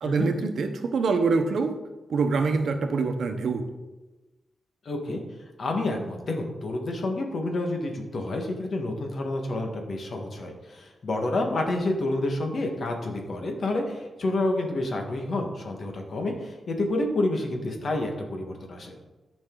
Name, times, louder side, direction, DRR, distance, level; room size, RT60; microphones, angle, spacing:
voice 1, 0.0-1.7 2.1-3.6, right 4 dB, 70° right, 6 dB, 1.0 m, -25 dB
voice 2, 4.8-5.2 5.6-18.9, left 2 dB, 55° left, 2 dB, 1.6 m, -29 dB
13.0 x 5.3 x 3.9 m, 1.1 s
wide cardioid pair, 120°, 0 cm